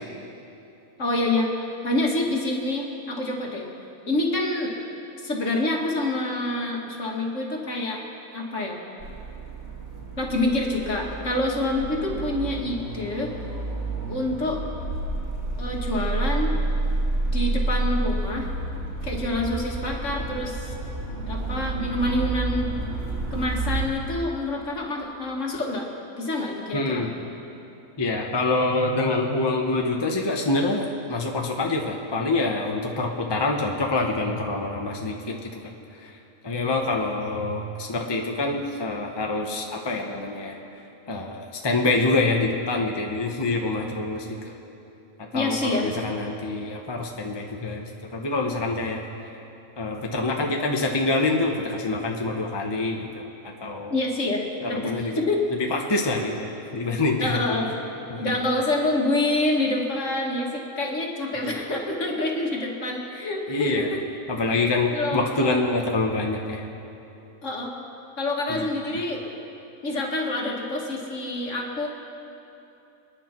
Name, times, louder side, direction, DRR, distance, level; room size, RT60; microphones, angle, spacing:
voice 1, 1.0-1.5 1.8-3.6 4.1-4.7 5.2-8.0 8.3-8.8 10.2-13.3 14.1-14.6 15.6-16.6 17.3-18.5 19.0-20.7 21.3-22.7 23.3-25.9 26.2-27.0 45.3-45.9 53.9-55.5 56.1-56.3 57.2-57.7 58.2-64.0 64.9-65.5 67.4-67.8 68.2-69.2 69.8-71.9, left 2 dB, 60° left, -1 dB, 2.3 m, -27 dB
sound 1, 9.0-23.8, right 2 dB, 50° right, 2.3 m, -29 dB
voice 2, 26.7-27.1 28.0-35.6 36.0-36.1 36.4-40.6 41.1-44.5 45.3-47.8 48.1-49.0 49.8-53.3 53.6-53.9 54.6-55.1 55.7-56.5 56.7-57.4 58.1-58.3 63.5-63.9 64.3-66.7 68.5-68.6, left 2 dB, 20° left, 1 dB, 1.1 m, -26 dB
29.0 x 10.0 x 4.5 m, 2.8 s
omnidirectional pair, 1.5 m